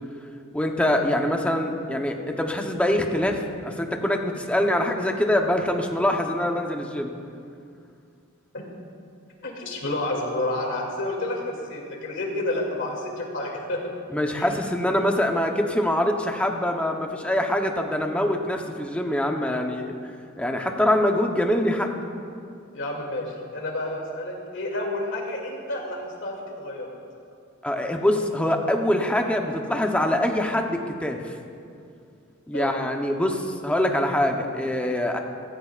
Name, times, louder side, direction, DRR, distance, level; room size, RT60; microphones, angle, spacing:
voice 1, 0.5-7.1 14.1-19.9 20.4-21.9 27.6-31.3 32.5-35.2, left 1 dB, 5° left, 3 dB, 0.9 m, -24 dB
voice 2, 9.4-13.8 14.4-14.5 22.7-23.2 23.5-26.9 32.5-32.8, left 1 dB, 65° left, -1 dB, 2.5 m, -30 dB
16.0 x 16.0 x 2.5 m, 2.4 s
head